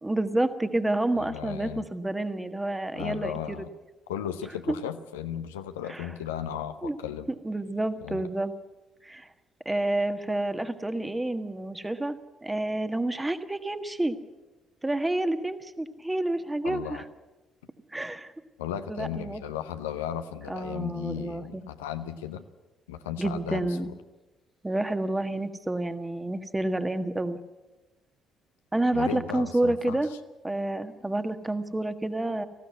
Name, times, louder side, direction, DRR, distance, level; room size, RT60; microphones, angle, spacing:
voice 1, 0.0-3.7 4.7-4.8 5.9-6.1 6.8-7.0 7.4-8.5 9.0-9.3 9.6-14.2 14.8-17.0 17.9-18.3 18.9-19.4 20.5-21.6 23.2-23.9 24.6-27.4 28.7-30.1 30.4-32.5, right 1 dB, 15° right, 9 dB, 1.5 m, -29 dB
voice 2, 1.2-1.8 2.9-3.7 4.1-7.3 8.0-8.2 16.6-17.0 18.6-22.4 22.9-23.7 28.9-30.0, left 10 dB, 75° left, 9 dB, 0.8 m, -35 dB
19.5 x 15.5 x 9.5 m, 1.1 s
figure-of-eight pair, 45°, 0 cm